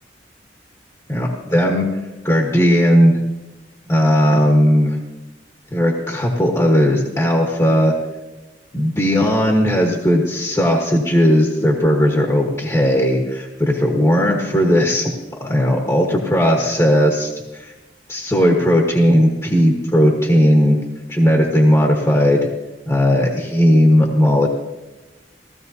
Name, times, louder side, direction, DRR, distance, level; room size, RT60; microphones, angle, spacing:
voice 1, 1.1-1.9 2.2-3.2 3.9-5.0 5.7-7.9 8.7-15.1 15.4-17.7 18.1-20.8 21.1-22.5 22.9-24.5, equal, 15° left, -1 dB, 1.2 m, -16 dB
16.5 x 14.0 x 2.7 m, 1.1 s
head